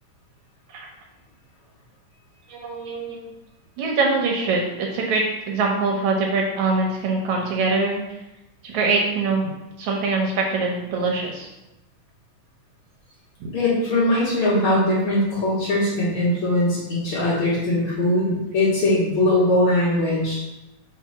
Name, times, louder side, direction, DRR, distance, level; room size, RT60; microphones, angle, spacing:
voice 1, 2.5-3.3 3.8-8.0 8.6-11.5 13.4-13.5, right 3 dB, 75° right, 0 dB, 2.0 m, -23 dB
voice 2, 13.5-20.4, left 1 dB, 50° left, -7 dB, 2.0 m, -21 dB
4.6 x 4.0 x 5.7 m, 0.97 s
omnidirectional pair, 3.7 m